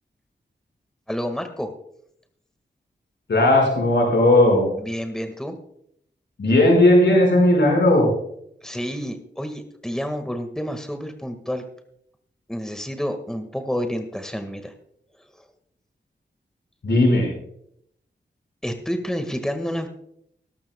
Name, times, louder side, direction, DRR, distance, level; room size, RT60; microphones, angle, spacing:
voice 1, 1.1-1.7 4.8-5.6 8.6-11.6 12.5-14.7 18.6-19.9, equal, 5° left, 6 dB, 1.7 m, -29 dB
voice 2, 3.3-4.7 6.4-8.1 16.8-17.3, left 1 dB, 75° left, -1 dB, 5.2 m, -16 dB
20.5 x 12.0 x 2.3 m, 0.72 s
cardioid pair, 50°, 18 cm